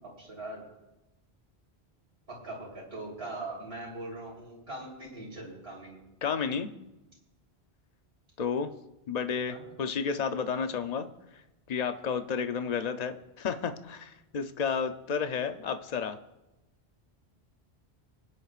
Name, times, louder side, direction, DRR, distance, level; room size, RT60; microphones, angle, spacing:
voice 1, 0.0-0.6 2.3-6.0 9.5-9.6, right 2 dB, 70° right, -3 dB, 4.0 m, -41 dB
voice 2, 6.2-6.7 8.4-8.7 9.1-11.1 11.7-16.2, left 6 dB, 45° left, 8 dB, 0.7 m, -31 dB
25.0 x 9.8 x 2.5 m, 0.99 s
omnidirectional pair, 1.1 m